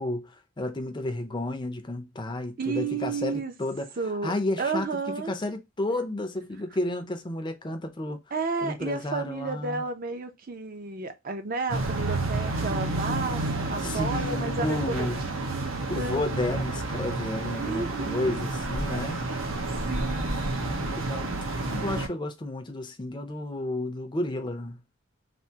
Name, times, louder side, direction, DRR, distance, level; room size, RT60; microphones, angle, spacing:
voice 1, 0.0-3.9 4.2-4.9 5.3-8.2 8.6-9.8 13.8-15.2 15.9-19.2 20.0-24.8, left 1 dB, 20° left, 0.5 m, -32 dB
voice 2, 2.6-3.5 4.0-5.3 8.3-13.4 13.7-15.1 15.5-16.2 17.5-18.5 19.9-20.5, right 4 dB, 45° right, 0.5 m, -32 dB
sound 1, 11.7-22.1, right 2 dB, 85° right, 0.8 m, -30 dB
3.4 x 2.5 x 2.7 m
head